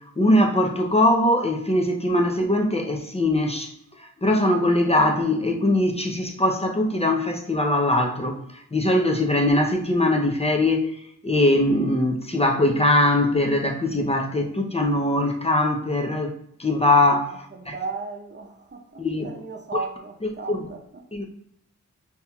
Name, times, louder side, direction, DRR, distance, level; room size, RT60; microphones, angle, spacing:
voice 1, 0.2-3.7 4.0-16.3 16.6-17.3 17.7-17.8 19.0-19.3 19.7-19.8 20.5-20.7 21.1-21.2, left 1 dB, 20° left, 0.6 m, -21 dB
voice 2, 17.3-21.0, right 4 dB, 35° right, 0.7 m, -36 dB
5.4 x 2.8 x 2.3 m
cardioid pair, 50°, 32 cm